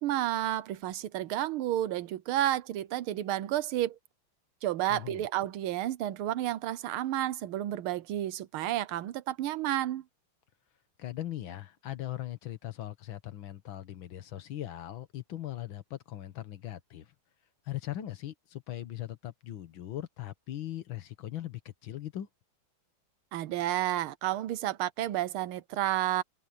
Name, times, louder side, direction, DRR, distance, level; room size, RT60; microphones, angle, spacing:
voice 1, 0.0-4.0 4.6-10.0 23.3-26.2, right 13 dB, 85° right, 1.7 m, -31 dB
voice 2, 4.9-5.2 11.0-17.1 17.7-22.3, left 13 dB, 70° left, 1.9 m, -39 dB
omnidirectional pair, 2.3 m